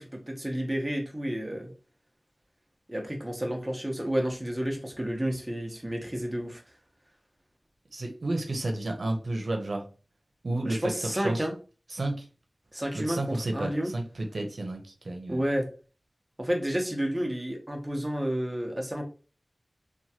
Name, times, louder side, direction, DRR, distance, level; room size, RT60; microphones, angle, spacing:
voice 1, 0.0-1.7 2.9-6.6 10.6-11.5 12.7-13.9 15.3-15.7 16.4-19.0, equal, 15° right, 1 dB, 0.8 m, -31 dB
voice 2, 7.9-9.9 10.4-11.5 11.9-12.2 12.9-15.4, right 2 dB, 80° right, 3 dB, 0.6 m, -31 dB
3.0 x 2.2 x 2.8 m, 0.35 s
wide cardioid pair, 60°, 0 cm